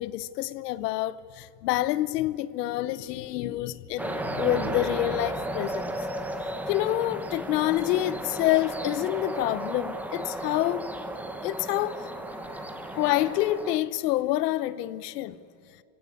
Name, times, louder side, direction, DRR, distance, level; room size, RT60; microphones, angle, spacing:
voice 1, 0.0-5.9 6.7-10.8 11.4-12.0 12.9-15.4, left 15 dB, 70° left, 1.0 m, -27 dB
sound 1, 4.0-13.8, right 1 dB, 5° right, 0.8 m, -34 dB
sound 2, 4.2-5.8, right 2 dB, 75° right, 7.7 m, -38 dB
28.0 x 16.5 x 8.4 m
supercardioid pair, 170°, 50 cm